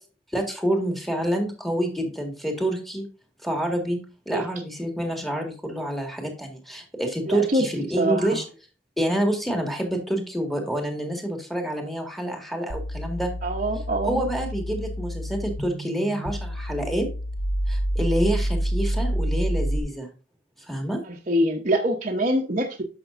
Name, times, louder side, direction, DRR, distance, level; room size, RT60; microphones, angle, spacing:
voice 1, 0.3-3.0 3.4-4.0 4.3-8.4 9.0-13.3 14.0-17.1 17.7-20.1 20.6-21.0, right 1 dB, ahead, 3 dB, 1.9 m, -27 dB
voice 2, 7.3-7.7 8.0-8.4 13.4-14.3 21.0-22.8, right 1 dB, 40° right, -1 dB, 1.0 m, -24 dB
sound 1, 12.7-19.8, equal, 45° left, 1.0 m, -28 dB
11.0 x 6.1 x 2.6 m, 0.36 s
head